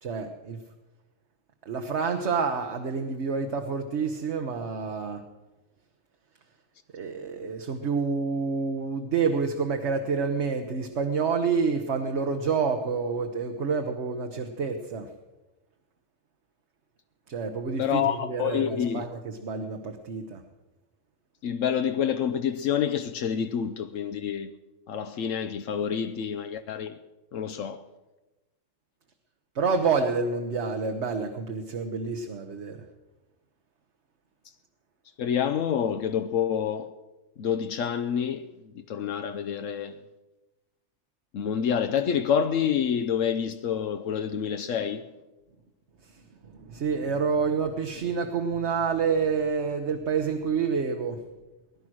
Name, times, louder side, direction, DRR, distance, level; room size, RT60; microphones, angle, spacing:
voice 1, 0.0-0.6 1.6-5.2 6.9-15.1 17.3-20.4 29.5-32.8 46.4-51.2, right 5 dB, 60° right, 1.3 m, -28 dB
voice 2, 17.8-19.0 21.4-24.5 24.9-26.9 27.3-27.8 35.2-36.9 37.4-38.4 38.7-40.0 41.3-45.0, left 8 dB, 85° left, 1.1 m, -27 dB
19.5 x 11.5 x 6.2 m
omnidirectional pair, 1.3 m